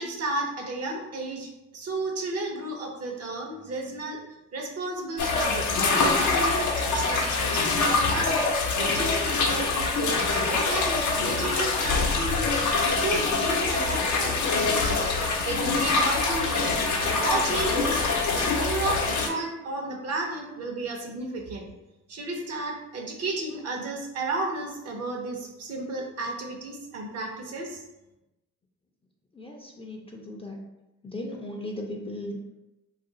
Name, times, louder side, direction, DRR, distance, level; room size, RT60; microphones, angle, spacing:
voice 1, 0.0-4.2 4.5-5.7 5.9-12.5 12.8-21.7 22.1-27.8, right 2 dB, 55° right, 1 dB, 0.7 m, -33 dB
sound 1, 5.2-19.3, left 3 dB, 80° left, 0.6 m, -25 dB
voice 2, 29.3-30.6 31.0-32.5, left 1 dB, 20° left, 1 dB, 0.4 m, -37 dB
2.5 x 2.3 x 3.8 m, 0.99 s
cardioid pair, 90°, 30 cm